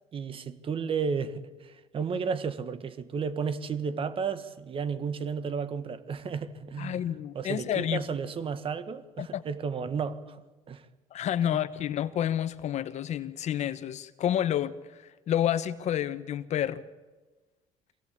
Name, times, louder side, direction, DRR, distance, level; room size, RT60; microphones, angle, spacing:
voice 1, 0.1-7.0 7.3-10.4 10.7-10.8, right 6 dB, 40° right, 1.6 m, -33 dB
voice 2, 6.8-8.0 9.2-9.4 11.1-16.8, left 10 dB, 55° left, 1.0 m, -29 dB
24.0 x 17.5 x 8.5 m
cardioid pair, 105°, 14 cm